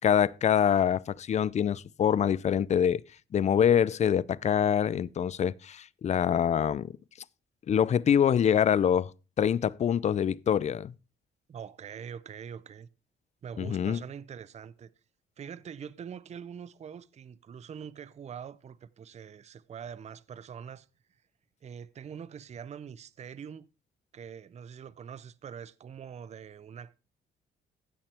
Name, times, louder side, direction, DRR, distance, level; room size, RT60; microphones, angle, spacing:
voice 1, 0.0-3.0 3.3-6.9 7.7-9.1 9.4-10.9 13.6-14.0, left 8 dB, 35° left, 0.4 m, -25 dB
voice 2, 11.5-12.9 13.4-14.9 15.4-20.9 21.6-23.7 24.1-27.0, right 7 dB, 35° right, 0.5 m, -44 dB
15.5 x 5.8 x 3.3 m
cardioid pair, 90°, 20 cm